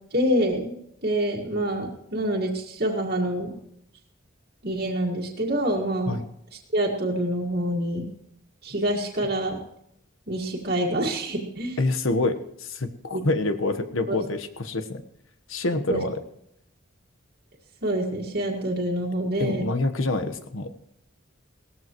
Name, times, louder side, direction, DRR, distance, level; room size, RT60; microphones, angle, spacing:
voice 1, 0.1-0.8 1.0-3.5 4.6-6.2 6.7-8.1 8.6-9.6 10.3-11.8 13.1-13.2 14.1-14.2 15.9-16.0 17.8-19.6, right 1 dB, 50° right, -3 dB, 1.9 m, -26 dB
voice 2, 11.8-15.0 15.5-16.2 19.4-20.7, left 2 dB, 90° left, 9 dB, 1.2 m, -26 dB
18.0 x 14.0 x 3.0 m, 0.74 s
head